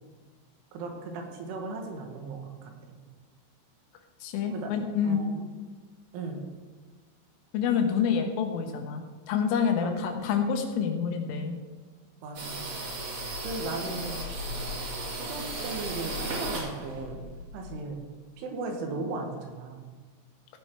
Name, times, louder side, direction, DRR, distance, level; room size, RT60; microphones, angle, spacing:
voice 1, 0.7-3.0 4.5-4.7 5.0-5.4 6.1-6.4 9.8-9.9 12.2-12.6 13.4-14.2 15.1-17.2 17.5-18.0 18.4-20.0, right 3 dB, 80° right, 2 dB, 4.2 m, -37 dB
voice 2, 4.2-5.3 7.5-11.6, left 7 dB, 90° left, 5 dB, 3.9 m, -27 dB
sound 1, 12.3-17.8, right 1 dB, 45° right, 2.5 m, -35 dB
15.5 x 9.2 x 4.7 m, 1.4 s
omnidirectional pair, 5.6 m